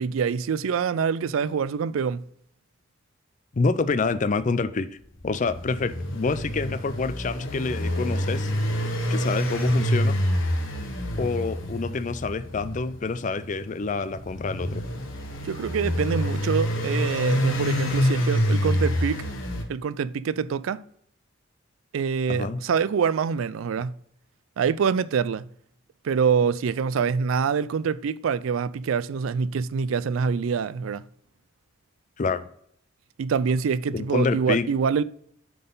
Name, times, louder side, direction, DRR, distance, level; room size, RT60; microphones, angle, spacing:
voice 1, 0.0-2.2 15.4-19.2 19.7-20.8 21.9-24.0 24.6-25.5 26.0-31.1 33.2-35.0, right 6 dB, 85° right, 0.4 m, -25 dB
voice 2, 3.5-4.9 5.2-8.5 9.1-10.2 11.2-14.8 22.3-22.6 32.2-32.5 33.9-34.7, left 4 dB, 40° left, 0.4 m, -27 dB
sound 1, 5.2-19.6, equal, 75° left, 1.1 m, -27 dB
9.2 x 3.9 x 3.9 m
head